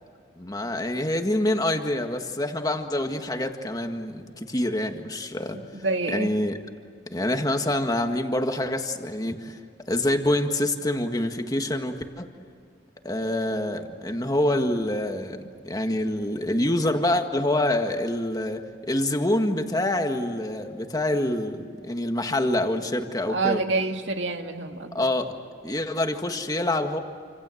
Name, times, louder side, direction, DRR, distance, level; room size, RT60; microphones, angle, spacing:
voice 1, 0.4-5.6 6.1-6.6 7.1-9.6 9.9-12.3 13.0-23.6 24.9-25.3 25.6-27.0, left 1 dB, 20° left, 5 dB, 1.7 m, -26 dB
voice 2, 5.7-6.3 23.3-25.0, right 3 dB, 90° right, 5 dB, 2.2 m, -27 dB
28.5 x 26.5 x 7.9 m, 2.2 s
head